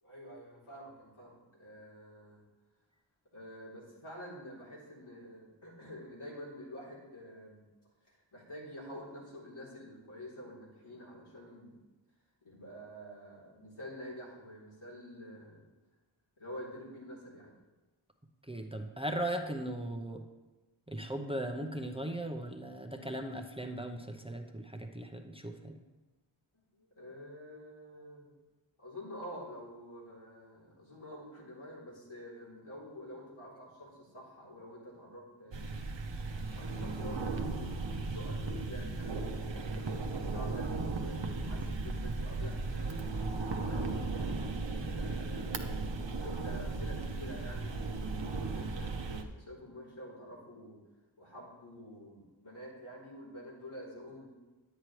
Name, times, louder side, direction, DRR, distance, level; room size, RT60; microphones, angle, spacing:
voice 1, 0.0-2.4 3.3-7.6 8.0-11.8 12.4-15.6 16.4-17.5 26.5-28.3 28.8-35.7 36.5-39.3 39.7-43.0 43.3-44.4 44.8-50.8 51.2-54.3, equal, 85° left, -7 dB, 3.5 m, -48 dB
voice 2, 18.5-20.2 20.9-25.8, right 1 dB, 10° right, 4 dB, 0.8 m, -38 dB
sound 1, 35.5-49.2, right 3 dB, 60° right, 0.9 m, -36 dB
9.9 x 9.1 x 3.2 m, 1.2 s
wide cardioid pair, 45°, 49 cm